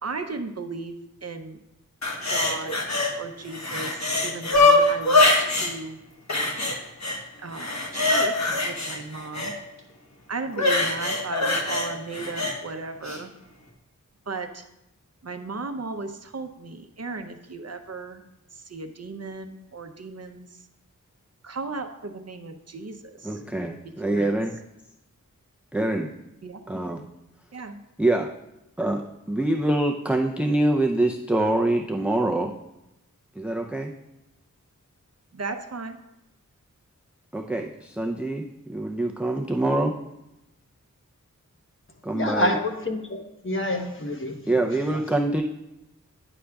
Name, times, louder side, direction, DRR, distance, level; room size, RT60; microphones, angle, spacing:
voice 1, 0.0-1.6 2.2-2.8 3.2-6.0 7.4-9.5 10.3-13.3 14.3-14.7 15.2-18.2 18.5-20.6 21.4-23.4 23.8-24.4 26.4-26.6 27.5-27.8 35.3-36.0, right 3 dB, 50° right, 7 dB, 0.6 m, -36 dB
sound 1, 2.0-3.1 3.5-5.7 6.3-7.2 7.5-9.5 10.5-12.5 13.0-13.2, left 2 dB, 55° left, 1.1 m, -23 dB
voice 2, 23.2-24.5 25.7-26.1 26.7-27.0 28.0-28.3 28.8-29.0 29.3-32.5 33.4-33.9 37.3-40.0 42.0-42.6 44.5-45.4, right 1 dB, 5° right, 1 dB, 0.5 m, -25 dB
voice 3, 42.1-43.2 43.4-45.0, left 1 dB, 40° left, 3 dB, 1.1 m, -28 dB
9.8 x 6.2 x 2.3 m, 0.89 s
wide cardioid pair, 50°, 32 cm